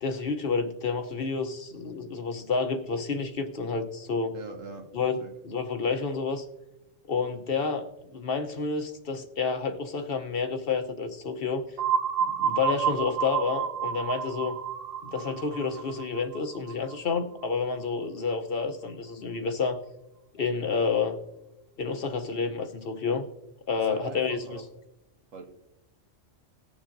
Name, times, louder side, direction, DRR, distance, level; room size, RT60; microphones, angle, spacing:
voice 1, 0.0-4.3 4.9-5.2 5.4-6.4 7.1-7.9 8.1-11.6 12.3-14.6 15.0-19.8 20.3-21.2 21.8-23.2 23.7-24.6, left 5 dB, 55° left, 7 dB, 0.9 m, -29 dB
voice 2, 4.3-4.9 5.2-5.3 23.8-24.7 25.3-25.5, right 4 dB, 80° right, 4 dB, 1.6 m, -42 dB
sound 1, 11.8-17.5, right 7 dB, 60° right, 0.7 m, -30 dB
19.0 x 7.1 x 2.6 m, 0.91 s
omnidirectional pair, 1.3 m